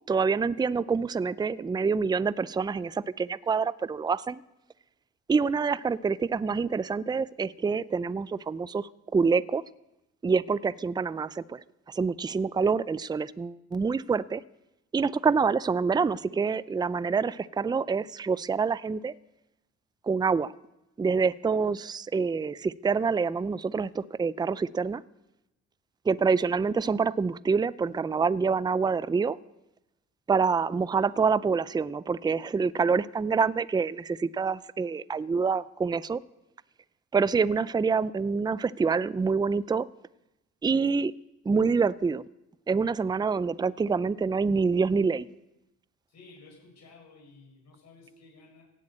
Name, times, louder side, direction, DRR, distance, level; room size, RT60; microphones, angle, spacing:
voice 1, 0.1-4.4 5.3-9.6 10.2-14.4 14.9-19.1 20.0-20.5 21.0-25.0 26.0-29.4 30.3-36.2 37.1-39.9 40.6-41.1 41.5-42.2 42.7-45.3, right 5 dB, 15° right, 19 dB, 0.4 m, -26 dB
voice 2, 46.1-48.6, left 3 dB, 60° left, -1 dB, 6.9 m, -53 dB
16.5 x 8.3 x 8.7 m, 0.94 s
cardioid pair, 90°, 30 cm